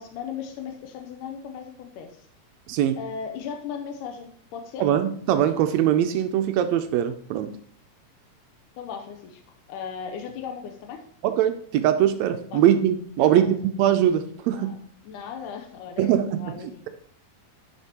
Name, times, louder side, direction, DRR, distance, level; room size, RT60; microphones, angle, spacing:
voice 1, 0.0-2.3 3.0-4.8 8.8-11.0 12.5-12.6 13.2-13.4 14.5-14.8 15.0-16.9, left 7 dB, 90° left, 4 dB, 2.2 m, -37 dB
voice 2, 4.8-7.5 11.2-14.7 16.0-16.5, right 10 dB, 85° right, 8 dB, 1.5 m, -22 dB
11.5 x 5.2 x 2.9 m, 0.62 s
omnidirectional pair, 3.6 m